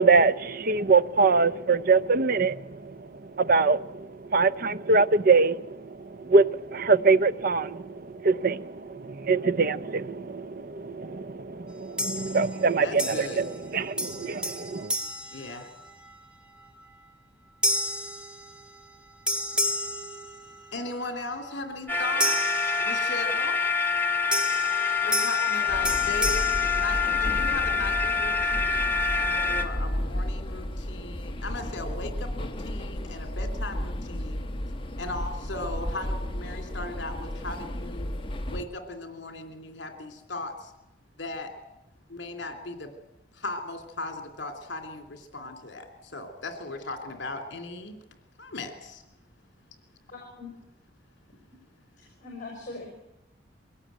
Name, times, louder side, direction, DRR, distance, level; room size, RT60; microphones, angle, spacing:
voice 1, 0.0-14.9, right 4 dB, 50° right, 0.7 m, -24 dB
sound 1, 12.0-12.6 13.0-13.7 14.0-16.1 16.6-16.9 17.6-19.0 19.3-20.9 22.2-23.4 24.3-27.6, equal, 5° right, 2.2 m, -32 dB
voice 2, 12.8-13.5 14.1-14.2 15.3-15.7 20.7-23.6 25.0-34.5 35.0-38.1 38.5-40.7 41.2-41.5 42.1-42.9 43.3-48.0 48.4-49.0, left 2 dB, 65° left, 3.0 m, -37 dB
sound 2, 21.9-29.6, left 5 dB, 10° left, 1.9 m, -26 dB
sound 3, 25.7-38.7, left 1 dB, 30° left, 1.4 m, -33 dB
voice 3, 50.1-50.5 52.0-52.9, left 3 dB, 45° left, 5.5 m, -41 dB
23.0 x 17.5 x 9.3 m
head